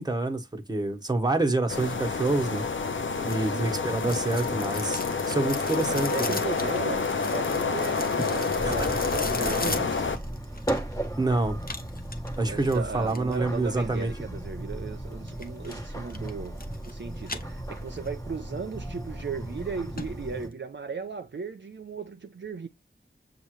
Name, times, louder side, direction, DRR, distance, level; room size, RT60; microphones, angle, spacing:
voice 1, 0.0-2.6 3.2-5.0 5.3-6.4 8.6-9.0 11.2-11.6 12.4-14.1, right 2 dB, 20° right, 1.1 m, -27 dB
sound 1, 1.7-10.2, left 4 dB, 70° left, 0.7 m, -28 dB
sound 2, 3.3-11.1 11.6-13.4 15.3-15.8 16.1-16.9 17.2-18.1 18.5-18.6 19.2-19.3 19.6-19.7 20.0-20.1 20.4-20.5, left 3 dB, 45° left, 0.9 m, -38 dB
voice 2, 5.9-10.1 12.5-22.7, right 5 dB, 60° right, 0.6 m, -36 dB
sound 3, 8.5-20.5, right 1 dB, 15° left, 1.3 m, -36 dB
6.9 x 2.4 x 3.1 m
wide cardioid pair, 60°, 21 cm